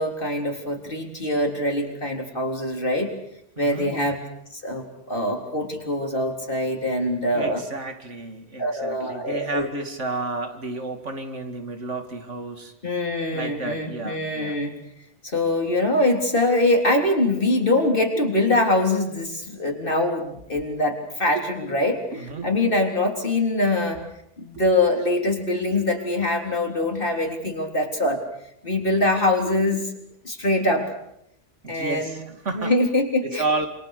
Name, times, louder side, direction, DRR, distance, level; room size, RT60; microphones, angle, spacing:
voice 1, 0.0-3.1 3.6-4.2 4.5-7.6 8.6-9.7 12.8-14.7 15.2-24.0 24.4-28.2 28.6-29.8 30.2-30.9 31.7-32.2 32.5-33.7, left 1 dB, 50° left, 2 dB, 4.0 m, -23 dB
voice 2, 3.6-4.0 7.3-12.7 13.3-14.5 21.3-21.4 22.1-22.5 25.8-25.9 31.6-32.7 33.2-33.7, right 3 dB, 85° right, 6 dB, 2.7 m, -31 dB
27.5 x 26.5 x 6.7 m, 0.77 s
omnidirectional pair, 1.2 m